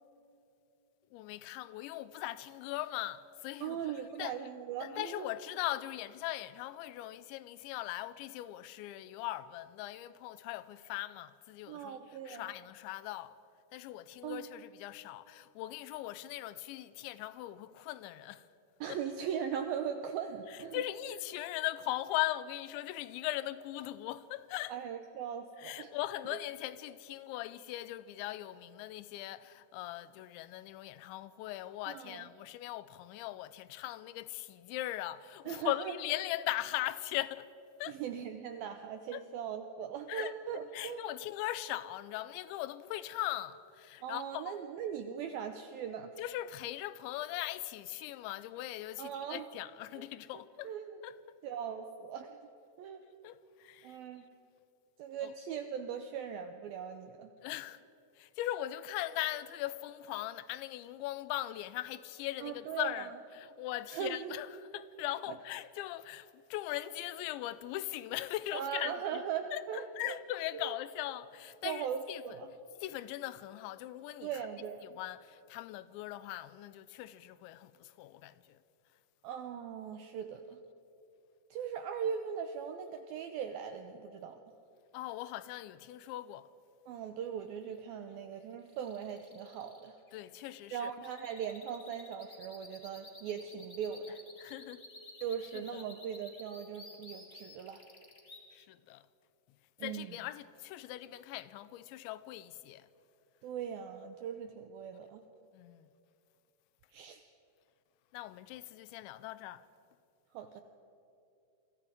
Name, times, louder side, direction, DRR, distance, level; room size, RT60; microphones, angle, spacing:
voice 1, 1.1-4.4 4.8-13.3 13.7-18.5 18.9-19.0 20.4-24.8 25.6-37.5 37.8-38.0 39.1-39.2 40.1-44.6 46.2-50.7 51.0-51.2 53.2-54.0 55.2-55.3 57.4-57.8 58.2-69.2 69.5-72.4 72.8-74.5 74.8-78.6 84.9-86.5 90.1-91.2 94.1-94.8 95.5-95.9 98.5-99.0 99.8-102.9 105.5-105.9 108.1-109.6, left 15 dB, 85° left, 3.0 m, -40 dB
voice 2, 3.6-5.3 11.7-12.5 14.2-14.5 18.8-20.8 24.7-26.0 26.3-26.4 31.9-32.3 35.5-35.9 37.9-41.0 44.0-46.2 49.0-49.5 50.0-50.1 50.6-51.0 51.4-52.4 52.8-53.0 53.8-54.2 55.0-57.3 62.4-63.1 63.9-64.3 68.5-70.2 70.5-70.8 71.6-72.5 74.2-75.0 79.2-80.6 81.5-84.4 86.9-90.0 90.7-94.2 95.2-97.8 99.8-100.2 103.4-105.2 106.9-107.2 110.3-110.6, right 8 dB, 80° right, 2.2 m, -39 dB
sound 1, 88.6-98.4, left 2 dB, 30° left, 1.1 m, -54 dB
28.5 x 23.5 x 5.1 m
omnidirectional pair, 5.2 m